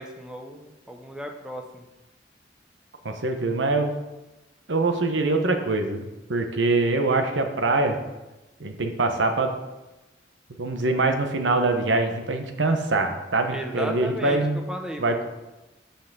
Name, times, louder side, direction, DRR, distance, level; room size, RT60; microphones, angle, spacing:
voice 1, 0.0-1.8 13.5-15.2, equal, 5° right, 3 dB, 0.7 m, -35 dB
voice 2, 3.0-3.9 4.7-8.0 8.6-9.5 10.6-14.6 15.0-15.2, right 2 dB, 90° right, 5 dB, 1.0 m, -24 dB
5.9 x 5.7 x 6.8 m, 1.1 s
head